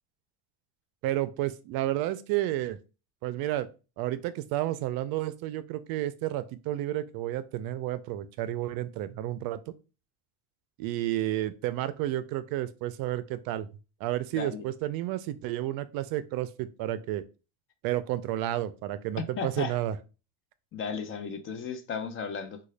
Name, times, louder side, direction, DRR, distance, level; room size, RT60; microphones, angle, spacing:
voice 1, 1.0-2.8 3.2-3.7 4.0-9.6 10.8-13.7 14.0-17.2 17.8-20.0, right 14 dB, 60° right, 0.5 m, -31 dB
voice 2, 14.3-14.6 19.4-19.8 20.7-22.6, left 6 dB, 30° left, 0.5 m, -35 dB
3.7 x 2.3 x 3.2 m
cardioid pair, 135°, 41 cm